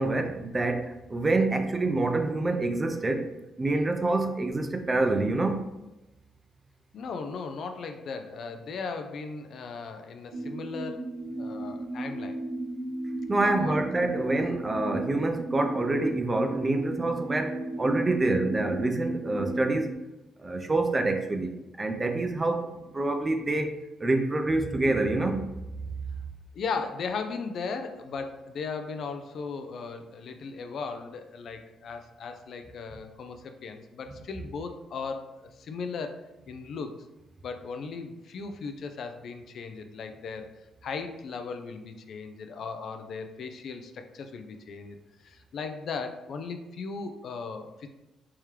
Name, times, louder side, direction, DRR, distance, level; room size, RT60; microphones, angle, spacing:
voice 1, 0.0-5.7 13.3-20.0 20.4-25.5, right 2 dB, 25° right, 6 dB, 0.4 m, -27 dB
voice 2, 6.9-11.0 11.4-12.4 13.4-13.8 26.5-36.2 36.5-36.9 37.4-40.6 40.8-45.0 45.2-47.9, left 5 dB, 60° left, 6 dB, 0.4 m, -37 dB
sound 1, 10.3-19.9, right 1 dB, 90° right, 0.9 m, -35 dB
3.5 x 3.0 x 3.2 m, 0.99 s
cardioid pair, 90°, 0 cm